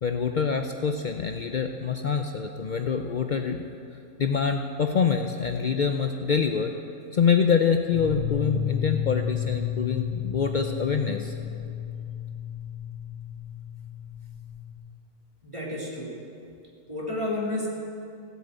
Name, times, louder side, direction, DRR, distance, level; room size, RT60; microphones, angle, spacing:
voice 1, 0.0-3.6 4.2-6.7 7.1-11.4, left 6 dB, 75° left, 5 dB, 0.4 m, -25 dB
sound 1, 7.9-14.7, left 9 dB, 40° left, 1.3 m, -32 dB
voice 2, 15.4-16.2 16.9-17.7, left 2 dB, 20° right, -4 dB, 2.6 m, -31 dB
17.0 x 7.8 x 8.1 m, 2.6 s
omnidirectional pair, 1.6 m